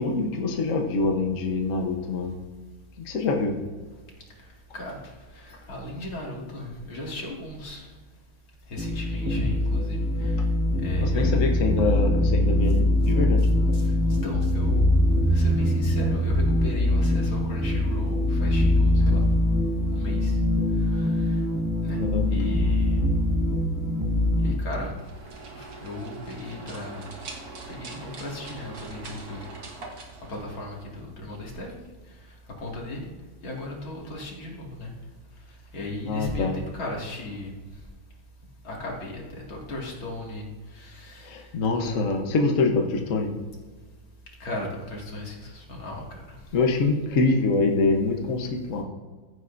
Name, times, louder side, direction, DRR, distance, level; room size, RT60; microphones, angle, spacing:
voice 1, 0.0-2.4 3.0-3.5 11.0-13.4 22.0-22.2 36.1-36.5 41.2-43.3 46.5-48.8, left 3 dB, 45° left, 2 dB, 1.2 m, -25 dB
voice 2, 4.7-8.0 8.7-10.5 10.8-11.4 13.4-15.0 15.3-19.3 19.9-20.4 20.7-21.4 21.8-22.0 22.3-23.0 24.4-25.0 25.5-27.1 27.7-29.8 30.3-33.1 33.4-34.9 35.5-37.5 38.6-41.6 44.4-46.7, left 1 dB, 80° left, -2 dB, 3.1 m, -36 dB
sound 1, 8.8-24.5, left 1 dB, 15° right, 0.7 m, -23 dB
sound 2, 24.9-31.0, right 3 dB, 50° right, 1.6 m, -42 dB
15.5 x 9.5 x 2.6 m, 1.4 s
omnidirectional pair, 2.2 m